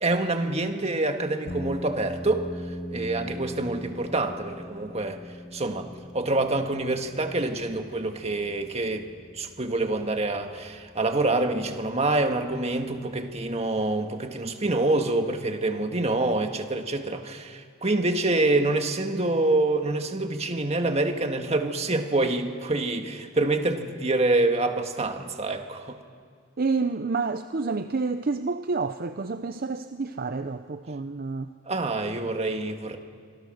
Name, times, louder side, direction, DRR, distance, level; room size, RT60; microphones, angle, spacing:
voice 1, 0.0-2.5 2.9-5.2 5.5-9.1 9.3-26.0 31.7-33.0, right 2 dB, 35° right, 5 dB, 1.7 m, -26 dB
sound 1, 1.5-14.0, equal, 40° left, 1.5 m, -42 dB
voice 2, 26.6-31.5, right 4 dB, 50° right, 10 dB, 0.6 m, -29 dB
26.0 x 25.5 x 6.5 m, 2.1 s
head